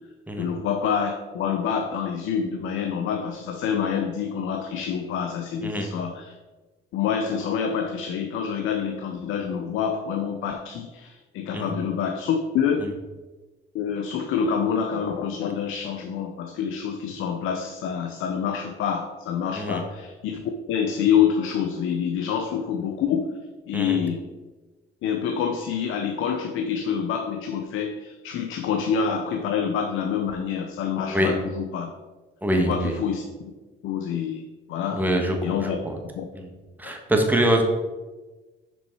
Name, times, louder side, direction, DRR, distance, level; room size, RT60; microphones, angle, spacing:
voice 1, 0.4-6.3 6.9-12.9 13.7-20.4 20.7-23.3 23.7-24.2 25.0-31.9 32.6-33.5 33.8-35.1 35.4-35.8 36.2-36.3 36.8-36.9, left 7 dB, 90° left, 5 dB, 0.7 m, -27 dB
voice 2, 32.4-33.0 34.9-36.0 36.3-36.5 36.8-37.6, right 1 dB, 10° right, 2 dB, 1.4 m, -24 dB
6.4 x 5.3 x 4.6 m, 1.2 s
cardioid pair, 90°, 20 cm